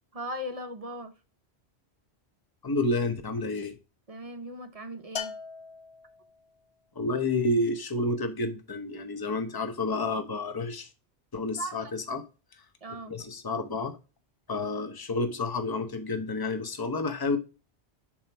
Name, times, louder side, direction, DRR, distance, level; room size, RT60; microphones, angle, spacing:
voice 1, 0.1-1.1 4.1-5.3 11.6-11.9 12.8-13.2, equal, 40° right, 0.7 m, -38 dB
voice 2, 2.6-3.8 6.9-10.9 11.3-12.2 12.5-12.6 13.1-14.0 14.5-17.4, left 2 dB, 25° left, 0.8 m, -30 dB
Bell, 5.2-6.5, left 7 dB, 75° left, 1.0 m, -39 dB
7.3 x 3.2 x 4.4 m
omnidirectional pair, 1.1 m